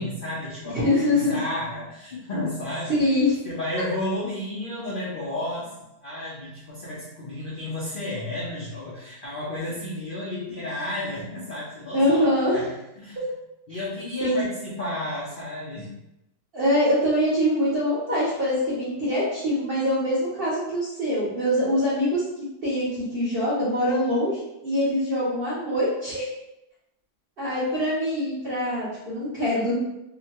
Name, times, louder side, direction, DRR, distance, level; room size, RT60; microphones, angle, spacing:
voice 1, 0.0-3.0 3.4-5.7 6.0-12.7 13.0-13.2 13.7-15.9, left 1 dB, 55° left, -7 dB, 0.5 m, -32 dB
voice 2, 0.8-1.4 2.9-3.4 3.8-3.9 11.9-12.6 14.2-14.4 16.5-22.2 22.6-26.2 27.4-29.8, left 1 dB, 50° right, -10 dB, 0.7 m, -24 dB
2.9 x 2.1 x 2.8 m, 0.88 s
omnidirectional pair, 1.7 m